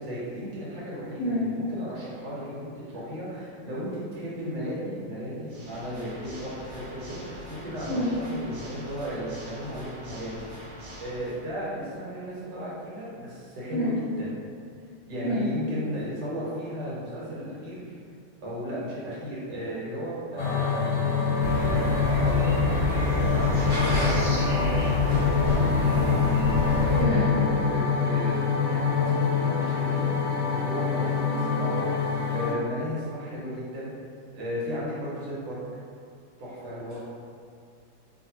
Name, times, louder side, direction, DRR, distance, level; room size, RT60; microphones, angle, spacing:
voice 1, 0.0-10.7 11.0-14.3 15.1-17.9 18.4-26.0 26.9-33.9 34.3-35.6 36.4-37.0, equal, 80° right, -8 dB, 1.5 m, -35 dB
Water / Mechanisms, 5.4-11.4, right 1 dB, 65° right, 1.3 m, -44 dB
sound 1, 20.4-32.5, left 5 dB, 90° left, 1.3 m, -25 dB
sound 2, 21.4-27.0, equal, 40° right, 0.8 m, -28 dB
voice 2, 27.0-27.3, equal, 65° left, -9 dB, 1.0 m, -27 dB
2.8 x 2.6 x 2.8 m, 2.3 s
omnidirectional pair, 2.0 m